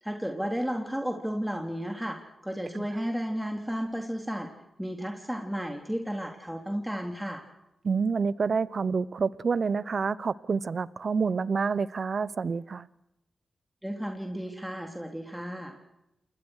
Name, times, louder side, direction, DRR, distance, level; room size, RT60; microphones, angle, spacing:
voice 1, 0.0-4.5 4.8-7.4 13.8-15.8, equal, 5° right, 3.6 m, -33 dB
voice 2, 7.8-12.9, right 5 dB, 60° right, 0.9 m, -28 dB
28.5 x 20.5 x 6.5 m
supercardioid pair, 45°, 0 cm